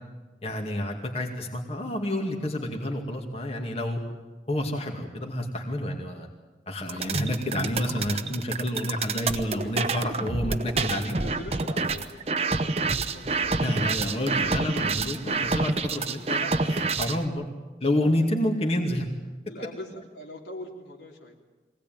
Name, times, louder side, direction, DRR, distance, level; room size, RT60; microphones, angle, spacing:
voice 1, 0.4-4.0 4.5-6.3 6.7-11.2 13.6-17.5 17.8-19.1, left 1 dB, 35° left, 1 dB, 2.3 m, -29 dB
sound 1, 6.9-17.2, right 3 dB, 35° right, 0.9 m, -28 dB
voice 2, 10.9-14.5 15.3-15.5 19.5-21.4, left 1 dB, 80° left, 0 dB, 3.2 m, -44 dB
23.5 x 18.0 x 9.2 m, 1.2 s
head